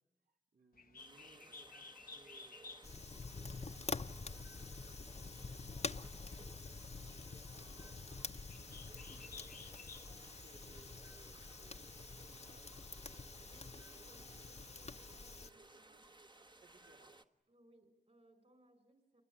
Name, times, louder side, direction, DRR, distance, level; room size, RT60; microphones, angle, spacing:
voice 1, 0.2-8.5 9.1-13.2 13.5-13.7 14.2-14.5 14.8-17.2, right 2 dB, 75° right, 3 dB, 3.5 m, -68 dB
Bird, 0.7-10.3, left 4 dB, 80° left, 0.9 m, -57 dB
sound 1, 1.0-17.2, right 2 dB, 30° right, 1.4 m, -60 dB
Fire, 2.8-15.5, left 4 dB, 50° left, 0.9 m, -47 dB
voice 2, 13.4-16.1 17.5-19.2, right 1 dB, 45° right, 10 dB, 6.0 m, -67 dB
28.0 x 21.5 x 9.9 m, 0.91 s
wide cardioid pair, 55°, 15 cm